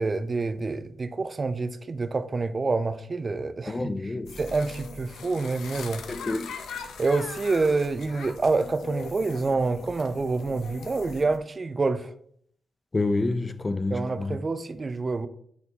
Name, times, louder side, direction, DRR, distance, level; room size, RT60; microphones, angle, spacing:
voice 1, 0.0-6.0 7.0-12.1 13.9-15.3, right 3 dB, 45° right, 0.5 m, -27 dB
voice 2, 3.7-4.3 6.1-6.5 12.9-14.4, left 2 dB, 35° left, 0.5 m, -28 dB
sound 1, 4.3-11.4, left 5 dB, 80° left, 0.7 m, -41 dB
10.5 x 4.3 x 2.9 m
supercardioid pair, 45°, 0 cm